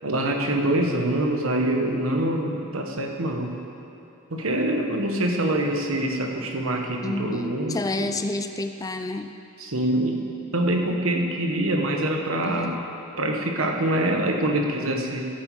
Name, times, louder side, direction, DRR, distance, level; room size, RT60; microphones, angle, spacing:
voice 1, 0.0-3.6 4.3-8.1 9.6-10.2 10.5-12.7 13.2-15.3, right 1 dB, 85° right, 2 dB, 1.2 m, -25 dB
voice 2, 7.0-9.3 12.4-12.8, left 2 dB, 15° left, 8 dB, 0.3 m, -30 dB
14.5 x 7.6 x 4.8 m, 2.7 s
head